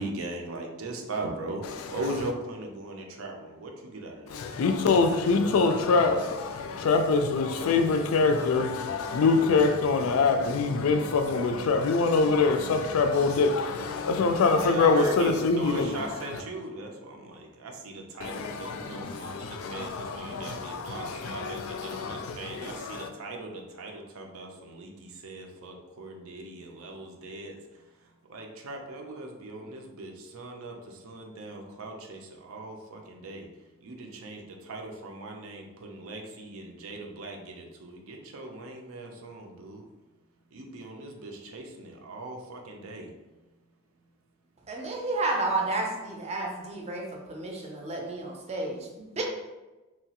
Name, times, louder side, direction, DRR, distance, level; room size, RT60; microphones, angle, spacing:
voice 1, 0.0-1.6 1.9-4.4 14.6-27.6 28.3-33.4 33.8-39.8 40.5-43.1, right 2 dB, 80° right, 0.5 m, -39 dB
voice 2, 1.6-2.3 4.3-16.4 18.2-23.1, left 4 dB, 85° left, 0.4 m, -25 dB
voice 3, 44.7-49.2, right 2 dB, 30° right, 0.5 m, -31 dB
2.9 x 2.3 x 2.8 m
head